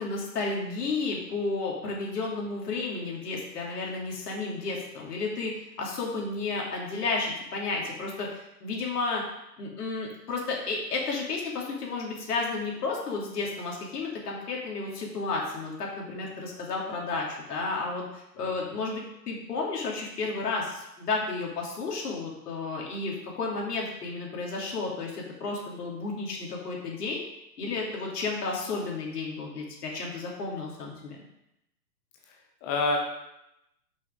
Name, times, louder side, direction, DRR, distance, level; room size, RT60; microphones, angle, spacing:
voice 1, 0.0-9.2 9.6-27.2 27.6-31.2, left 3 dB, 65° left, -2 dB, 2.8 m, -32 dB
voice 2, 18.4-18.8 32.3-33.0, left 3 dB, 15° left, 1 dB, 0.4 m, -30 dB
6.2 x 5.7 x 5.1 m, 0.85 s
hypercardioid pair, 120°, 50 cm